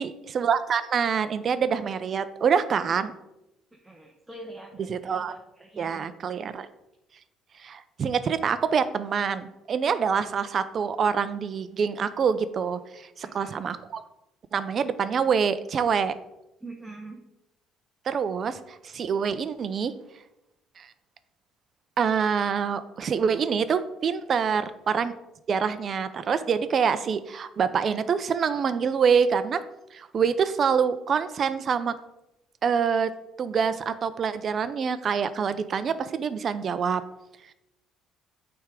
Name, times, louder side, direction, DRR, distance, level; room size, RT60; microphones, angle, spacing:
voice 1, 0.0-3.1 4.9-5.4 5.8-6.7 7.6-14.0 14.5-16.1 18.1-19.9 20.8-20.9 22.0-25.1 25.5-29.6 29.9-32.0 32.6-33.1 33.4-37.0, right 6 dB, 40° right, 13 dB, 0.5 m, -26 dB
voice 2, 3.7-6.0 13.2-13.6 16.6-17.2 24.4-24.7, right 2 dB, 10° right, 0 dB, 0.9 m, -44 dB
8.7 x 3.5 x 5.0 m, 0.91 s
cardioid pair, 125°, 0 cm